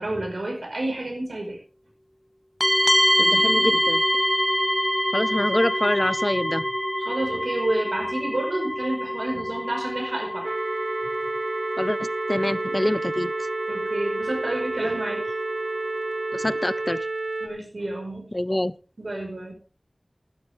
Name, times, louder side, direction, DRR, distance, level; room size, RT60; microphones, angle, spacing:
voice 1, 0.0-1.6 7.0-10.6 13.7-15.2 17.4-18.3 19.0-19.5, right 1 dB, 85° right, 4.9 m, -29 dB
sound 1, 2.6-16.9, equal, 5° left, 1.1 m, -26 dB
voice 2, 3.2-4.0 5.1-6.6 11.8-13.3 16.3-17.0 18.3-18.7, left 1 dB, 30° left, 0.6 m, -25 dB
sound 2, 10.4-17.5, right 2 dB, 55° right, 1.9 m, -30 dB
14.0 x 13.0 x 3.5 m
wide cardioid pair, 45°, 0 cm